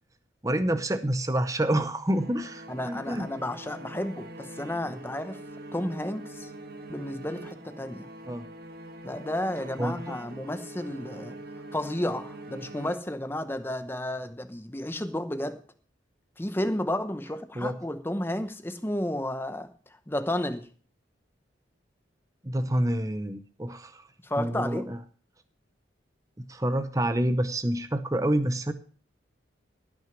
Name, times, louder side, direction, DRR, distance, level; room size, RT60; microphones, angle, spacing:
voice 1, 0.4-3.3 8.3-8.5 9.8-10.2 17.6-17.7 22.4-24.0 24.4-25.0 26.4-28.7, right 1 dB, 15° right, 10 dB, 0.7 m, -28 dB
sound 1, 2.1-13.5, right 1 dB, 50° right, 1.5 m, -44 dB
voice 2, 2.7-5.4 5.7-6.5 6.9-8.1 9.0-11.4 11.7-15.6 16.4-19.7 20.1-20.7 24.2-24.9, left 1 dB, 10° left, 10 dB, 0.9 m, -32 dB
17.0 x 6.2 x 5.9 m, 0.41 s
head